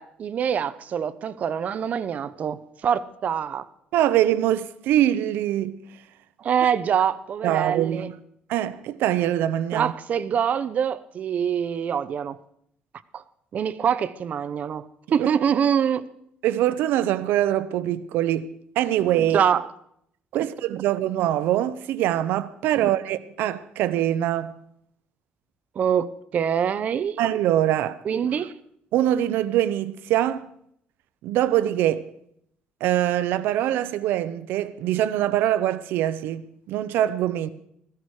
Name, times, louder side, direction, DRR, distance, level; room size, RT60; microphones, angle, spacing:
voice 1, 0.0-3.7 6.4-8.1 9.7-12.4 13.1-13.2 13.5-16.1 19.2-19.7 22.7-22.9 25.8-27.2 28.0-28.5, right 8 dB, 45° right, 0.8 m, -25 dB
voice 2, 3.9-5.8 7.4-8.1 8.5-9.9 15.2-15.3 16.4-18.5 18.8-19.5 20.3-24.5 27.2-28.0 28.9-30.5 31.2-32.1 32.8-37.5, right 12 dB, 90° right, 0.7 m, -23 dB
16.0 x 14.5 x 4.8 m
cardioid pair, 135°, 3 cm